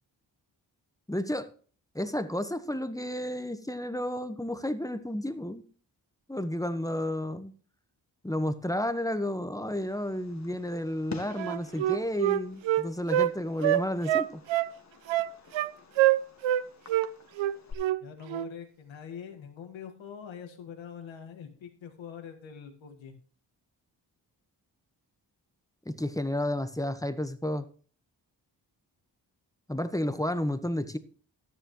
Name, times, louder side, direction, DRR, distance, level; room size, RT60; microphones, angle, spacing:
voice 1, 1.1-1.5 1.9-5.6 6.3-7.5 8.2-14.4 25.8-27.6 29.7-31.0, left 1 dB, 5° left, 10 dB, 1.3 m, -31 dB
Fireworks, 9.7-17.7, left 4 dB, 35° left, 1.8 m, -49 dB
Wind instrument woodwind instrument, 11.4-13.3 13.6-14.7 15.1-15.7 16.0-16.6 16.9-17.1 17.4-18.0 18.3-18.5, right 13 dB, 85° right, 0.6 m, -25 dB
voice 2, 18.0-23.1, left 7 dB, 85° left, 5 dB, 1.8 m, -44 dB
12.5 x 10.5 x 3.1 m, 0.43 s
supercardioid pair, 45°, 45 cm